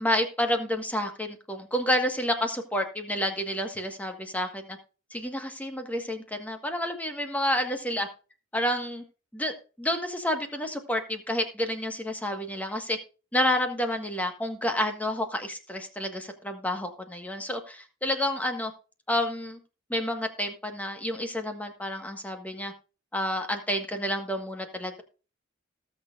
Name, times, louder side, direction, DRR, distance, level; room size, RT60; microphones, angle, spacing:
voice 1, 0.0-4.8 5.1-8.1 8.5-9.0 9.3-13.0 13.3-18.7 19.1-19.6 19.9-22.7 23.1-25.0, left 1 dB, 10° left, 5 dB, 1.5 m, -29 dB
19.0 x 6.5 x 2.5 m, 0.35 s
head